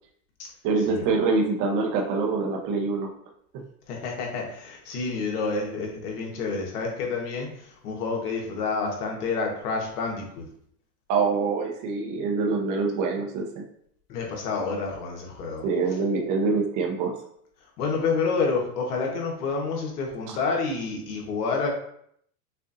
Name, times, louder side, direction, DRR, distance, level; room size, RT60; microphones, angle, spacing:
voice 1, 0.6-3.1 11.1-13.6 15.6-17.2 20.3-20.4, right 4 dB, 40° right, 1 dB, 1.1 m, -25 dB
voice 2, 3.9-10.5 14.1-15.7 17.8-21.7, left 4 dB, 70° left, 0 dB, 1.5 m, -29 dB
6.5 x 2.6 x 2.7 m, 0.68 s
supercardioid pair, 125°, 47 cm